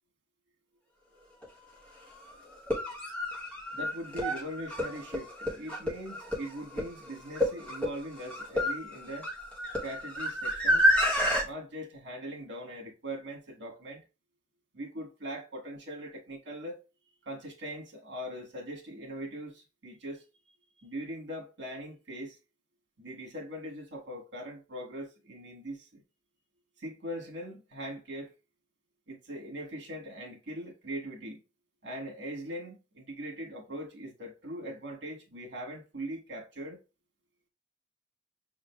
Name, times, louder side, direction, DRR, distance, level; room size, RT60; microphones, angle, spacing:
sound 1, 1.4-1.5 2.5-11.4, equal, 5° left, 1.0 m, -29 dB
voice 1, 3.7-9.3 9.8-10.9 11.4-14.0 14.7-16.8 17.2-20.2 20.8-22.4 23.0-26.0 26.8-28.3 29.1-31.4 31.8-36.8, equal, 85° right, 1.4 m, -41 dB
5.9 x 3.7 x 2.3 m
head